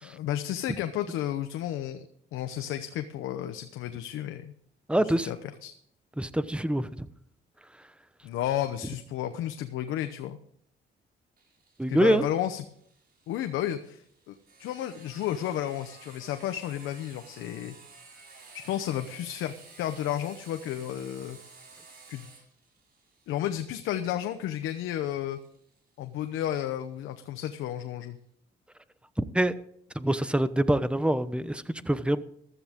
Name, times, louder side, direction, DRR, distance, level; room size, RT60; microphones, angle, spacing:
voice 1, 0.0-2.1 2.3-4.5 5.2-5.4 5.6-5.7 8.2-10.4 11.9-12.6 13.3-17.8 18.5-21.4 22.1-22.3 23.3-25.4 26.0-28.2, left 11 dB, 90° left, 8 dB, 0.9 m, -32 dB
voice 2, 4.9-5.3 6.2-7.1 11.8-12.3 29.2-29.5 29.9-32.2, right 1 dB, 5° right, 13 dB, 0.9 m, -25 dB
Sawing, 11.4-26.8, right 4 dB, 50° right, 5.4 m, -54 dB
15.0 x 13.0 x 3.7 m, 0.68 s
cardioid pair, 90°, 20 cm